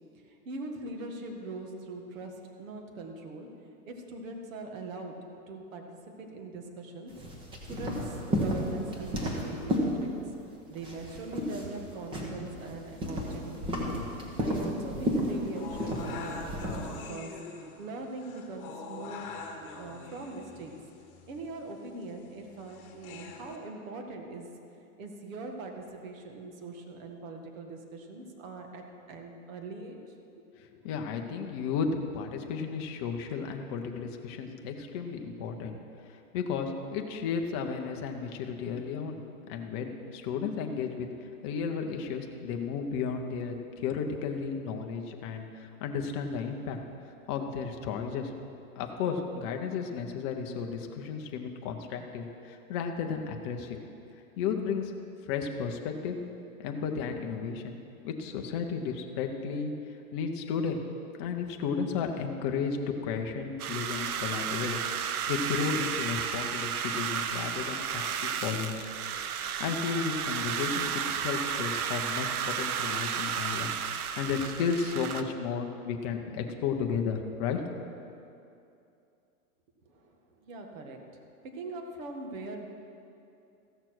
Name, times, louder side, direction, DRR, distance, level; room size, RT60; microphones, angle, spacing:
voice 1, 0.3-3.5 3.9-7.1 7.7-10.1 10.7-13.9 14.4-16.7 17.1-17.4 17.8-19.3 19.8-20.7 21.3-24.5 25.0-30.0 79.8-80.1 80.4-81.0 81.4-82.7, right 2 dB, 60° right, 2 dB, 1.7 m, -41 dB
sound 1, 7.1-10.4 10.7-17.1, equal, 10° right, 1.0 m, -33 dB
sound 2, 15.6-23.6, left 4 dB, 40° left, 1.5 m, -44 dB
voice 2, 30.6-31.9 32.1-35.8 36.1-39.2 39.5-41.1 41.4-46.8 47.3-48.3 48.8-53.8 54.4-54.9 55.3-56.2 56.6-57.7 58.0-59.7 60.1-60.8 61.2-62.8 63.0-68.9 69.3-77.6, left 6 dB, 20° left, 3 dB, 0.5 m, -33 dB
sound 3, 63.6-75.2, right 8 dB, 80° right, 0.9 m, -33 dB
14.5 x 6.7 x 6.0 m, 2.7 s
hypercardioid pair, 160°, 44 cm